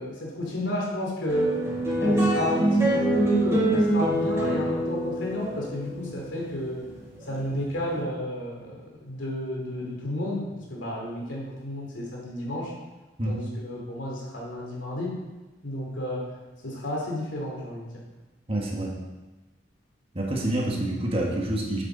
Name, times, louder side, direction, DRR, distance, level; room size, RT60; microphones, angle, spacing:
voice 1, 0.0-1.6 2.0-6.8 7.3-12.7 13.2-15.2 15.6-16.3 16.6-17.9, equal, 85° left, -2 dB, 2.6 m, -31 dB
sound 1, 1.3-7.9, right 1 dB, 15° right, 2.4 m, -25 dB
voice 2, 18.5-19.0 20.1-21.8, right 1 dB, 30° right, -2 dB, 1.4 m, -27 dB
8.4 x 8.0 x 3.9 m, 1.1 s
head